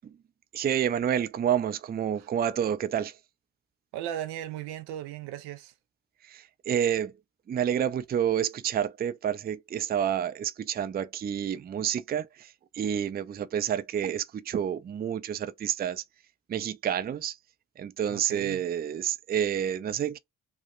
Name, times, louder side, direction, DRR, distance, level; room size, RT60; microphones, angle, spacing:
voice 1, 0.5-3.1 6.3-7.1 7.5-12.5 12.7-16.0 16.5-17.4 17.8-20.2, right 9 dB, 25° right, 0.4 m, -29 dB
voice 2, 3.9-5.7 18.1-18.6, right 11 dB, 75° right, 0.5 m, -37 dB
3.1 x 2.0 x 2.4 m
hypercardioid pair, 40°, 39 cm